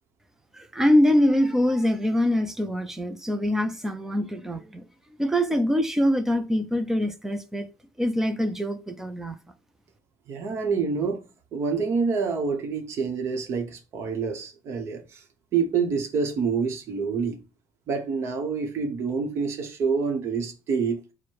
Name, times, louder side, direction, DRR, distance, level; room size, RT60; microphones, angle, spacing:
voice 1, 0.5-4.8 5.2-7.7 8.0-9.4, equal, 5° right, 0.4 m, -24 dB
voice 2, 10.3-11.2 11.5-15.2 15.5-17.4 17.9-21.0, right 5 dB, 50° right, 0.9 m, -27 dB
4.5 x 2.1 x 4.6 m
cardioid pair, 160°, 6 cm